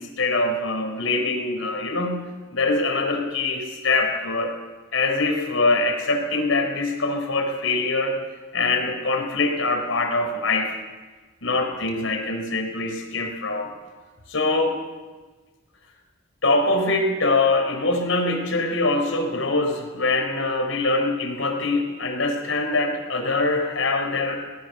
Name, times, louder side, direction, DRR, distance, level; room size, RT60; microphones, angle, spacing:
voice 1, 0.0-2.2 2.5-4.5 4.9-8.2 8.5-10.7 11.4-13.7 14.3-14.8 16.4-24.4, left 2 dB, 85° left, 4 dB, 4.3 m, -23 dB
20.5 x 19.0 x 6.8 m, 1.3 s
head